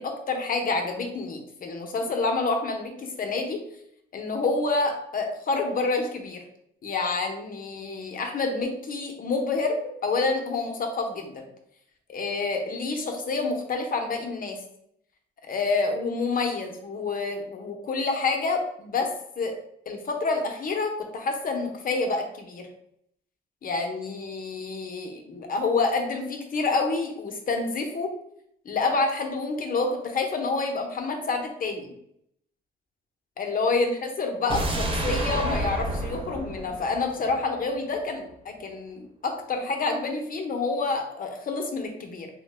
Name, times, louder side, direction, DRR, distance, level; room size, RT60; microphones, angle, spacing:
voice 1, 0.0-3.6 4.1-6.4 6.8-11.5 12.1-14.6 15.4-19.1 19.4-19.6 19.9-22.7 23.6-28.1 28.6-31.9 33.4-42.3, left 3 dB, 45° left, 4 dB, 0.7 m, -28 dB
sound 1, 34.5-37.6 37.9-38.0, right 1 dB, 25° right, 0.6 m, -29 dB
3.1 x 2.2 x 3.2 m, 0.72 s
cardioid pair, 90°, 20 cm